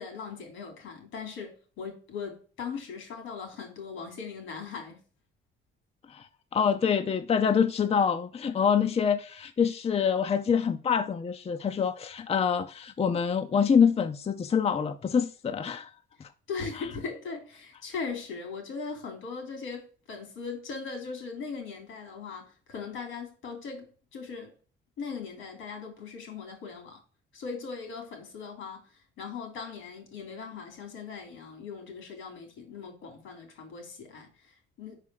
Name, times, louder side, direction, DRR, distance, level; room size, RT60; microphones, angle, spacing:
voice 1, 0.0-5.0 16.5-24.5 25.0-27.0 27.3-35.0, left 5 dB, 90° left, 3.2 m, -39 dB
voice 2, 6.5-15.9 16.2-16.3, left 7 dB, 30° left, 0.5 m, -26 dB
5.2 x 4.9 x 5.7 m
cardioid pair, 90°, 20 cm